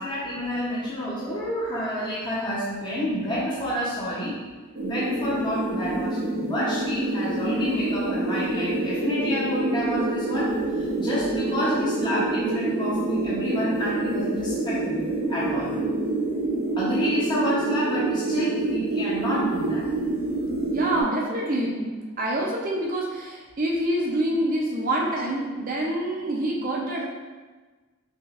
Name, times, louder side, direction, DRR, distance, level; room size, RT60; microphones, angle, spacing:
voice 1, 0.0-4.4 4.8-10.5 10.8-15.0 15.3-15.7 16.8-19.8, equal, 20° left, -8 dB, 0.7 m, -29 dB
sound 1, 4.8-21.0, right 2 dB, 75° right, 0.8 m, -27 dB
voice 2, 20.7-21.9 22.2-27.1, right 1 dB, 40° right, -2 dB, 0.6 m, -26 dB
5.9 x 2.5 x 2.4 m, 1.3 s
head